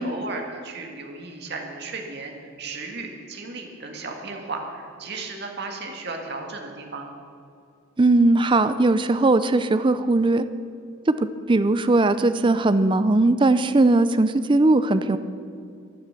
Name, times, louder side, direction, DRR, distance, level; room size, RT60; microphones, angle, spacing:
voice 1, 0.0-7.1, right 3 dB, 55° right, 2 dB, 2.0 m, -35 dB
voice 2, 8.0-10.4 11.1-15.2, right 2 dB, 25° right, 12 dB, 0.4 m, -19 dB
16.0 x 10.0 x 6.7 m, 2.4 s
head